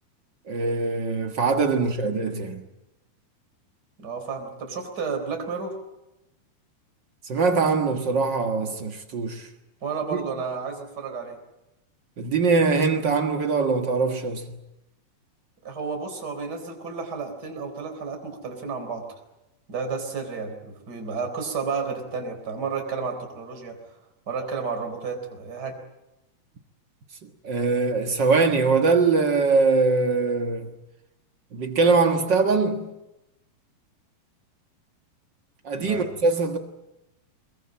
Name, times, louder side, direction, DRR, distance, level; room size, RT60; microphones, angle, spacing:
voice 1, 0.5-2.6 7.3-9.5 10.1-10.2 12.2-14.6 27.2-30.7 31.5-32.9 35.6-36.6, right 4 dB, 60° right, 1.1 m, -22 dB
voice 2, 4.0-5.8 9.8-11.4 15.6-19.1 19.7-23.9 24.3-25.8 35.8-36.2, right 5 dB, 25° right, 4.2 m, -32 dB
23.5 x 22.0 x 8.7 m
omnidirectional pair, 4.4 m